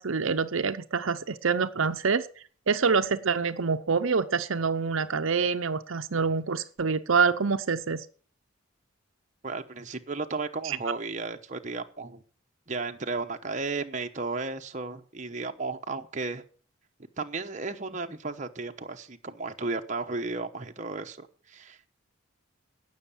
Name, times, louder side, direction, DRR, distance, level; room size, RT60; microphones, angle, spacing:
voice 1, 0.0-2.3 2.7-8.0 10.6-10.8, right 5 dB, 70° right, 9 dB, 0.7 m, -26 dB
voice 2, 9.4-12.2 12.7-16.4 17.2-21.9, right 3 dB, 35° right, 5 dB, 1.0 m, -34 dB
17.0 x 6.5 x 7.2 m, 0.43 s
head